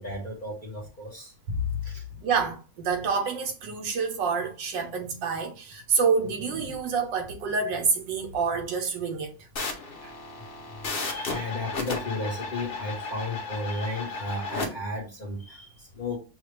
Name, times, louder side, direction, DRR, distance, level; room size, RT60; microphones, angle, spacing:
voice 1, 0.0-1.3 1.8-2.0 10.4-10.5 10.7-16.2, left 1 dB, 30° left, 1.0 m, -34 dB
voice 2, 1.5-1.8 2.2-9.3 10.0-10.1, right 5 dB, 75° right, 1.5 m, -27 dB
sound 1, 9.5-14.7, left 3 dB, 50° left, 0.7 m, -34 dB
5.9 x 2.4 x 3.1 m
omnidirectional pair, 2.0 m